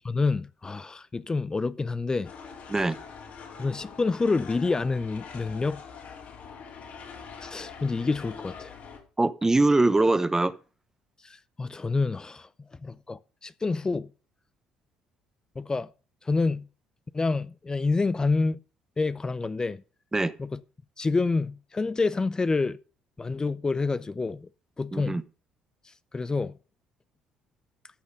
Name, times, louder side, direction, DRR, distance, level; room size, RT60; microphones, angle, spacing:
voice 1, 0.0-2.3 3.6-5.8 7.4-8.7 11.2-14.1 15.5-15.9 16.2-16.7 17.1-18.6 19.0-19.8 20.4-20.6 21.0-22.8 23.2-24.5 24.8-25.2 25.8-26.5, left 3 dB, 25° left, 0.7 m, -28 dB
sound 1, 2.2-9.0, left 6 dB, 65° left, 4.6 m, -44 dB
voice 2, 9.2-10.5 20.1-20.3 24.9-25.2, right 2 dB, 15° right, 0.9 m, -22 dB
14.5 x 6.4 x 5.3 m
hypercardioid pair, 60°, 3 cm